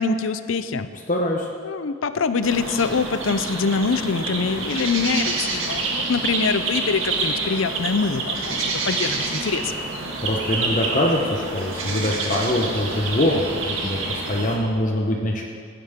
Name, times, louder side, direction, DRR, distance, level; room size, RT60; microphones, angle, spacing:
voice 1, 0.0-0.9 1.6-9.7, left 4 dB, 80° left, 12 dB, 0.6 m, -24 dB
voice 2, 1.1-1.5 10.2-13.4 13.8-15.4, left 1 dB, 40° left, 0 dB, 1.0 m, -23 dB
sound 1, 2.4-14.6, right 3 dB, 85° right, 1.8 m, -27 dB
16.5 x 10.0 x 3.7 m, 2.2 s
head